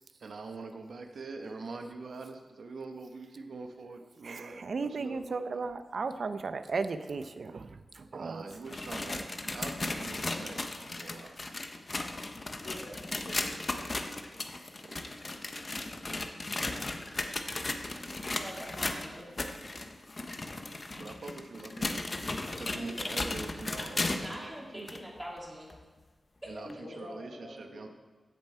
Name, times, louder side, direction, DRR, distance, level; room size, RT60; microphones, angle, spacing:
voice 1, 0.2-5.6 8.1-11.4 13.3-13.4 14.8-15.1 20.9-21.9 22.4-24.9 26.5-26.7 27.0-27.9, right 3 dB, 75° right, 5 dB, 1.1 m, -44 dB
voice 2, 4.2-8.4, right 4 dB, 60° right, 11 dB, 0.6 m, -35 dB
sound 1, 8.5-24.4 24.9-25.0 25.7-25.8 26.7-26.8, left 2 dB, 35° left, 0.8 m, -36 dB
voice 3, 12.6-13.4 16.4-16.9 21.0-21.3 22.6-23.1 26.6-27.9, left 1 dB, 80° left, -7 dB, 2.8 m, -47 dB
voice 4, 18.3-19.3 24.1-25.7 26.4-26.6 26.9-27.0, equal, 15° right, -3 dB, 2.8 m, -43 dB
15.0 x 7.1 x 4.5 m, 1.3 s
wide cardioid pair, 135°, 0 cm